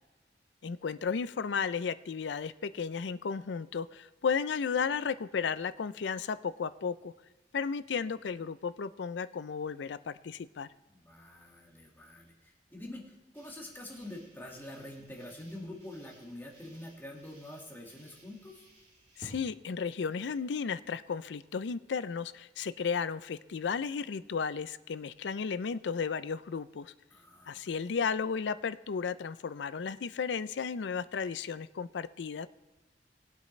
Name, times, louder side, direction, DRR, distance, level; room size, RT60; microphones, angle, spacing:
voice 1, 0.6-7.1 7.5-10.7 19.2-26.9 27.5-32.5, left 6 dB, 80° left, 15 dB, 0.4 m, -34 dB
voice 2, 10.9-18.7 27.1-27.9, left 1 dB, 10° left, -1 dB, 1.9 m, -46 dB
sound 1, 13.3-19.4, equal, 45° right, 3.5 m, -57 dB
19.0 x 8.2 x 3.2 m, 1.2 s
head